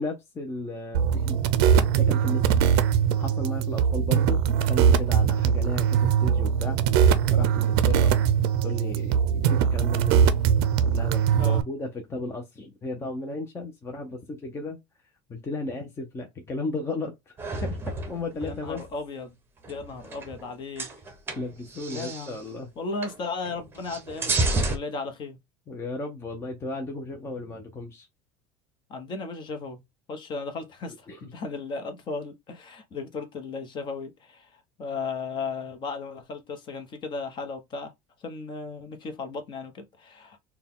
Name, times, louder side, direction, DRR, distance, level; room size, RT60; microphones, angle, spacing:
voice 1, 0.0-1.4 2.0-2.9 3.2-6.8 7.3-10.3 10.8-14.8 15.3-17.3 17.6-18.8 21.4-22.7 25.7-28.1 30.9-31.3, left 2 dB, 20° left, 0.7 m, -35 dB
sound 1, 0.9-11.6, right 8 dB, 85° right, 0.5 m, -21 dB
sound 2, 17.4-18.9 19.6-20.5 20.8-22.4 23.0-23.2 23.4-24.8, right 2 dB, 15° right, 0.8 m, -30 dB
voice 2, 18.3-19.4 19.7-20.9 21.9-22.4 22.8-25.4 28.9-29.8 30.1-37.9 38.2-40.4, left 4 dB, 40° left, 1.0 m, -35 dB
4.0 x 2.3 x 3.6 m
supercardioid pair, 130°, 13 cm